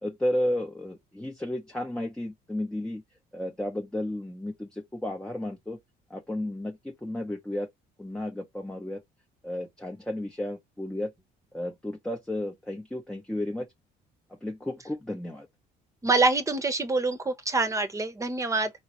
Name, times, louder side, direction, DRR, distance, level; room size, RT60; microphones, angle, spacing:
voice 1, 0.0-3.0 3.3-5.8 6.1-7.7 8.0-9.0 9.4-11.1 11.5-13.7 14.4-15.5, left 1 dB, 5° left, 0.9 m, -33 dB
voice 2, 16.0-18.7, right 3 dB, 20° right, 1.1 m, -25 dB
3.9 x 3.1 x 4.5 m
cardioid pair, 110°, 17 cm